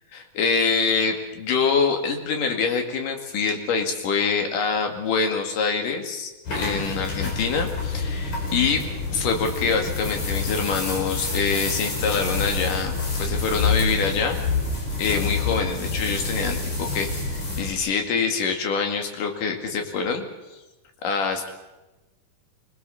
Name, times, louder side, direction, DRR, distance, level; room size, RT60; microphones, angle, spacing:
voice 1, 0.4-8.8 9.1-14.5 15.0-20.3 21.0-21.5, left 5 dB, 80° left, 4 dB, 3.7 m, -25 dB
sound 1, 6.5-17.7, left 3 dB, 65° left, 6.2 m, -27 dB
26.5 x 21.0 x 7.0 m, 1.1 s
omnidirectional pair, 3.7 m